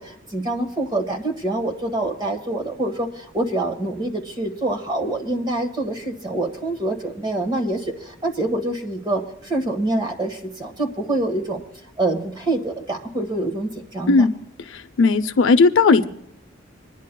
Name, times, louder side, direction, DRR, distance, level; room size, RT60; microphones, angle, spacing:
voice 1, 0.0-11.6 12.0-14.3, right 2 dB, 25° right, 3 dB, 1.5 m, -26 dB
voice 2, 14.7-16.0, left 4 dB, 70° left, 9 dB, 0.6 m, -16 dB
26.5 x 10.5 x 2.3 m, 0.73 s
head